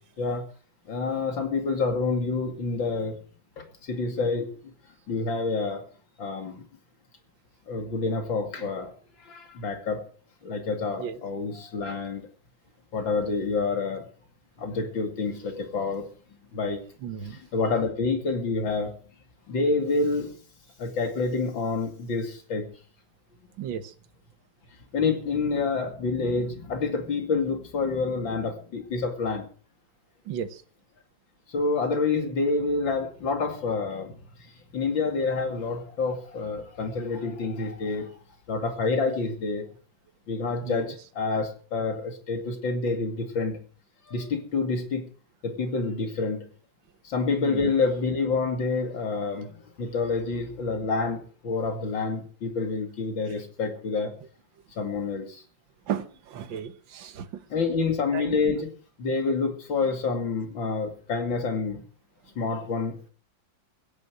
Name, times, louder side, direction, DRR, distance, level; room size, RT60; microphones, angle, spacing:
voice 1, 0.9-3.2 3.6-4.5 5.1-5.8 6.2-6.6 7.7-8.9 9.2-10.0 10.4-12.3 12.9-14.0 14.6-16.1 16.5-16.8 17.3-18.9 19.5-20.3 20.8-22.7 24.9-29.5 31.5-34.1 34.7-38.1 38.5-39.7 40.3-43.6 44.1-45.1 45.4-46.4 47.0-54.1 54.8-55.4 57.5-58.7 59.0-61.8 62.4-63.0, left 4 dB, 80° left, 5 dB, 3.2 m, -28 dB
voice 2, 17.0-17.4 23.6-23.9 30.3-30.6 40.6-40.9 47.4-47.7 55.9-57.4 58.1-58.4, right 9 dB, 80° right, 12 dB, 1.9 m, -34 dB
16.0 x 9.6 x 6.4 m, 0.41 s
omnidirectional pair, 2.0 m